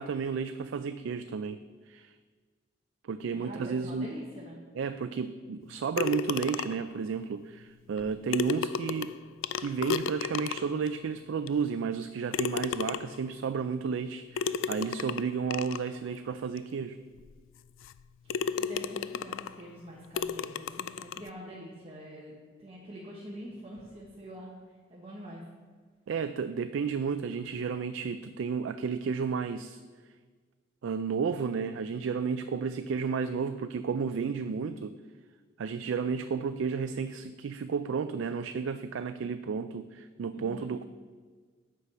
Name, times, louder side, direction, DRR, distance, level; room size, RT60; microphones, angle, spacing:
voice 1, 0.0-1.6 1.9-2.1 3.0-4.1 4.8-9.1 9.6-17.0 26.1-29.8 30.8-35.0 35.6-40.9, right 5 dB, 80° right, 10 dB, 0.3 m, -32 dB
voice 2, 3.3-4.6 18.2-18.3 18.6-25.4 40.3-40.7, equal, 30° right, -4 dB, 1.1 m, -45 dB
sound 1, 6.0-6.9 8.0-8.1 8.3-10.9 11.5-11.6 12.3-13.3 14.4-15.9 16.6-16.7 17.2-17.3 17.8-18.0 18.3-19.6 20.2-21.3, left 6 dB, 85° left, 0.3 m, -33 dB
8.2 x 6.3 x 5.6 m, 1.5 s
head